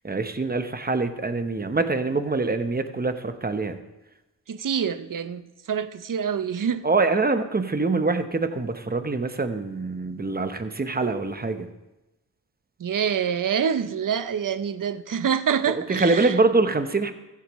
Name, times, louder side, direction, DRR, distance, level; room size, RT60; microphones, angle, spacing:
voice 1, 0.0-3.8 6.8-11.7 15.9-17.1, right 3 dB, 20° right, 1.0 m, -24 dB
voice 2, 4.5-6.9 12.8-16.4, right 7 dB, 50° right, 0.7 m, -26 dB
14.5 x 8.4 x 3.2 m
cardioid pair, 55°, 43 cm